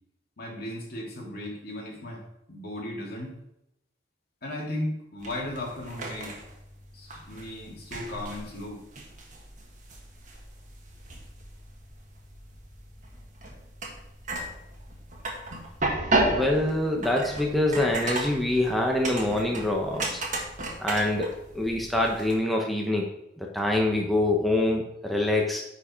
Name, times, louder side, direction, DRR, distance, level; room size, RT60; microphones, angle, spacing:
voice 1, 0.4-3.3 4.4-6.3 6.9-8.8, left 1 dB, 55° left, -2 dB, 2.4 m, -36 dB
sound 1, 5.2-22.3, right 2 dB, 45° right, 1.5 m, -34 dB
voice 2, 16.3-20.2 20.8-23.1 23.4-25.6, left 1 dB, ahead, 0 dB, 0.8 m, -25 dB
9.7 x 4.7 x 4.4 m, 0.82 s
head